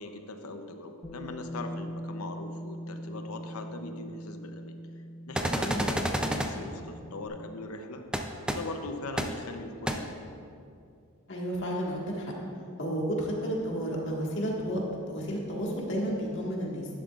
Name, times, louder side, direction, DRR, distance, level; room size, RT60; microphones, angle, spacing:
voice 1, 0.0-8.0 8.5-10.1, left 2 dB, 85° left, 6 dB, 0.7 m, -41 dB
Bass guitar, 1.0-7.3, equal, 25° left, 1.0 m, -42 dB
sound 1, 5.3-6.5 8.1-8.2 8.5-8.6 9.2-9.3 9.9-10.0, right 1 dB, 5° right, 0.4 m, -28 dB
voice 2, 5.6-6.0 11.3-12.3 12.8-14.8 15.1-16.9, equal, 55° left, -3 dB, 1.7 m, -32 dB
11.0 x 10.5 x 2.5 m, 2.5 s
head